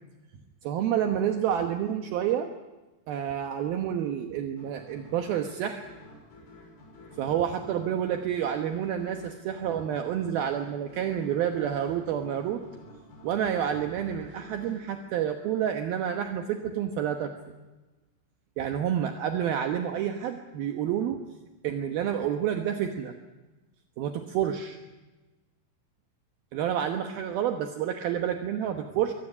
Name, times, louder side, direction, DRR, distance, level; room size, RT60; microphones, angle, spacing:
voice 1, 0.6-2.5 3.1-5.9 7.2-12.6 13.2-17.3 18.6-21.2 21.6-23.1 24.0-24.8 26.5-29.1, right 9 dB, 75° right, 5 dB, 2.2 m, -29 dB
sound 1, 4.6-15.8, left 1 dB, 65° left, 8.8 m, -51 dB
23.0 x 17.0 x 9.9 m, 1.1 s
omnidirectional pair, 6.0 m